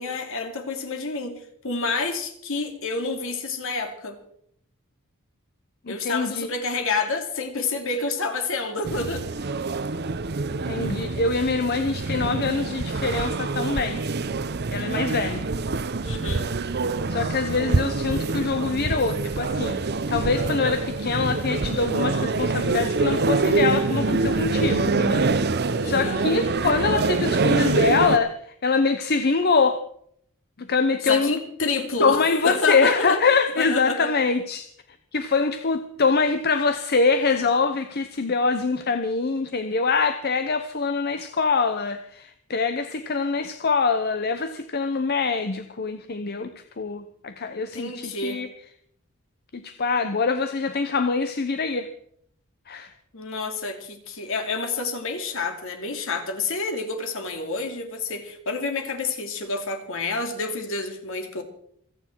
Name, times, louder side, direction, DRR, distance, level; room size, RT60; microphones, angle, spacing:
voice 1, 0.0-1.4 1.6-4.2 5.9-9.5 16.0-16.5 25.8-26.2 31.0-33.2 33.6-34.1 47.7-48.4 53.1-61.4, left 3 dB, 65° left, 5 dB, 2.7 m, -28 dB
voice 2, 5.9-6.5 10.5-14.0 14.7-15.5 17.1-25.3 25.8-28.3 28.6-29.8 30.6-31.3 32.0-34.6 35.1-46.5 46.8-48.5 49.6-51.9 52.7-52.9, left 4 dB, 45° left, 9 dB, 0.9 m, -24 dB
sound 1, 8.8-28.2, right 3 dB, 50° right, 0.8 m, -25 dB
28.0 x 9.4 x 4.6 m, 0.66 s
head